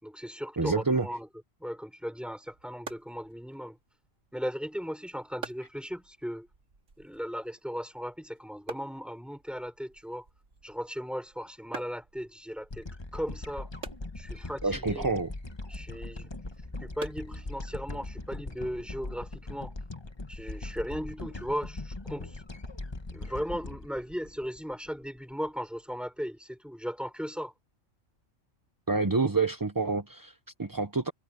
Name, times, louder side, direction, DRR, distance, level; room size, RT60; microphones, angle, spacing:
voice 1, 0.0-1.3 1.6-3.8 4.3-6.5 7.0-10.3 10.6-13.7 14.2-15.1 15.7-16.3 16.8-19.7 20.3-22.4 23.1-27.5, equal, ahead, 5.0 m, -37 dB
voice 2, 0.6-1.1 14.6-15.3 28.9-31.1, right 3 dB, 20° right, 0.7 m, -28 dB
sound 1, 2.2-18.0, right 4 dB, 80° right, 2.6 m, -50 dB
sound 2, 12.7-25.2, left 2 dB, 20° left, 1.2 m, -40 dB
omnidirectional pair, 1.3 m